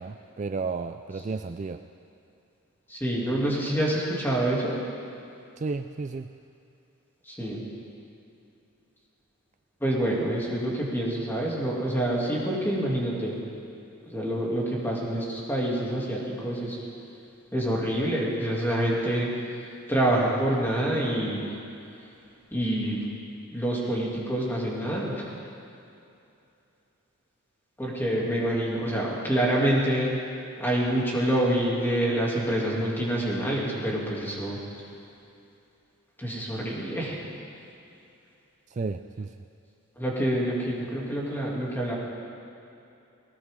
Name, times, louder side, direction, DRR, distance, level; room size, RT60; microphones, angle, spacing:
voice 1, 0.0-1.8 5.6-6.3 38.7-39.3, right 4 dB, 35° right, 8 dB, 0.3 m, -33 dB
voice 2, 2.9-4.8 7.3-7.6 9.8-13.4 14.0-16.8 17.5-19.3 19.9-21.5 22.5-23.1 23.5-25.2 27.8-30.2 30.6-34.6 36.2-37.2 40.0-42.0, right 1 dB, 10° left, -5 dB, 2.7 m, -27 dB
19.5 x 19.0 x 3.8 m, 2.7 s
head